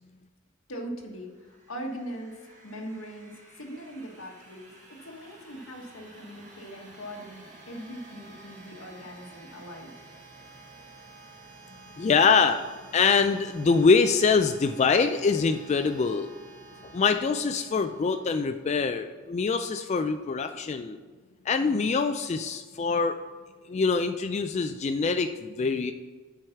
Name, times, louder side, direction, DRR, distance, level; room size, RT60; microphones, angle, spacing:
voice 1, 0.7-9.9, equal, 90° left, 0 dB, 1.5 m, -41 dB
sound 1, 1.1-18.7, right 3 dB, 35° right, 1.6 m, -51 dB
voice 2, 12.0-12.6 12.9-16.3 16.9-21.0 21.5-23.2 23.7-25.9, left 5 dB, 35° left, 7 dB, 0.3 m, -24 dB
7.7 x 4.7 x 5.8 m, 1.4 s
head